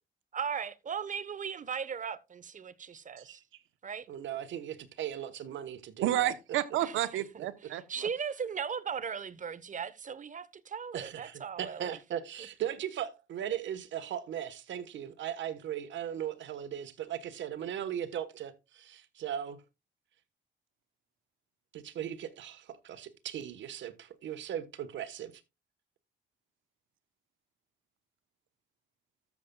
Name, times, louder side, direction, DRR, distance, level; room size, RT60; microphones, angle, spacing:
voice 1, 0.3-3.4 3.8-4.1 6.8-6.9 7.9-12.0, right 7 dB, 40° right, 0.9 m, -37 dB
voice 2, 4.1-6.3 10.9-19.6 21.7-25.3, right 10 dB, 70° right, 1.2 m, -38 dB
voice 3, 6.0-8.1, right 13 dB, 85° right, 0.9 m, -31 dB
13.5 x 7.2 x 2.3 m
cardioid pair, 90°, 20 cm